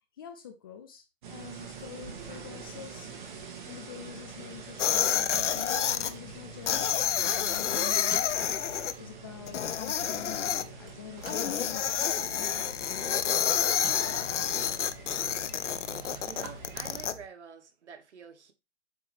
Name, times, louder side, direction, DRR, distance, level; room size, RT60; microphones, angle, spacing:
voice 1, 0.2-3.1 3.6-8.4 9.0-13.6, left 9 dB, 20° left, 0.5 m, -46 dB
sound 1, 1.2-17.1, right 5 dB, 45° right, 1.8 m, -46 dB
sound 2, 4.8-6.1 6.7-8.9 9.5-10.6 11.2-17.1, left 9 dB, 90° left, 0.7 m, -29 dB
sound 3, 4.9-17.2, right 5 dB, 20° right, 1.5 m, -53 dB
voice 2, 16.2-18.5, right 6 dB, 75° right, 1.5 m, -47 dB
7.8 x 3.1 x 4.2 m
hypercardioid pair, 155°, 35 cm